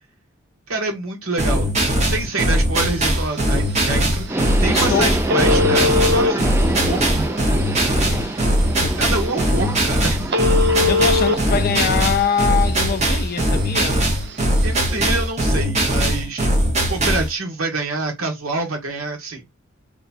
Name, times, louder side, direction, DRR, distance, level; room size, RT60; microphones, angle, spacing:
voice 1, 0.7-1.7 2.1-7.4 9.0-10.3 14.6-16.6 16.9-19.4, right 2 dB, 80° right, 1.3 m, -26 dB
sound 1, 1.4-17.3, right 1 dB, 35° right, 1.0 m, -20 dB
Telephone, 2.8-15.3, left 3 dB, 55° right, 0.7 m, -26 dB
Subway metro underground, 4.3-11.9, right 1 dB, 10° right, 0.4 m, -26 dB
voice 2, 4.7-5.2 8.1-8.4 8.8-9.1 10.9-14.1, left 6 dB, 45° left, 0.4 m, -23 dB
3.1 x 2.3 x 4.2 m
head